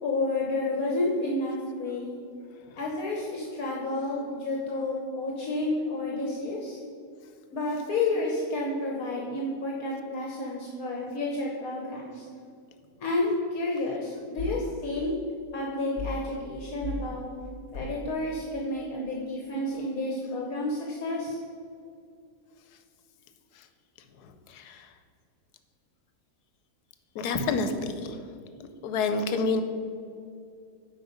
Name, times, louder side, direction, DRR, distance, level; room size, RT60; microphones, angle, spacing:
voice 1, 0.0-2.1 2.8-6.8 7.5-12.3 13.0-15.1 15.5-17.3 17.7-21.4, left 2 dB, 65° left, -1 dB, 1.3 m, -30 dB
sound 1, 14.4-14.7 16.0-16.3 16.8-17.1 17.7-18.1, left 3 dB, 50° left, 1.2 m, -35 dB
voice 2, 24.2-24.9 27.1-28.2 28.8-29.6, left 4 dB, 85° left, 8 dB, 1.2 m, -29 dB
8.3 x 5.2 x 5.1 m, 2.4 s
omnidirectional pair, 1.7 m